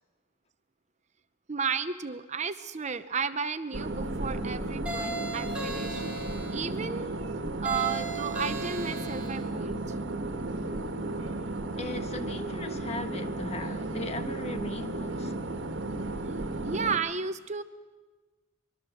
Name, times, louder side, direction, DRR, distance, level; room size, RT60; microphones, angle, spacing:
voice 1, 1.5-6.2 6.5-7.1 7.6-9.9 16.6-17.6, right 5 dB, 35° right, 0.8 m, -33 dB
sound 1, 3.7-17.0, right 2 dB, 70° right, 1.7 m, -34 dB
sound 2, 4.9-6.6 7.7-9.4, right 1 dB, 5° right, 4.3 m, -37 dB
voice 2, 11.8-15.3, left 2 dB, 35° left, 1.4 m, -38 dB
24.0 x 23.0 x 7.1 m
head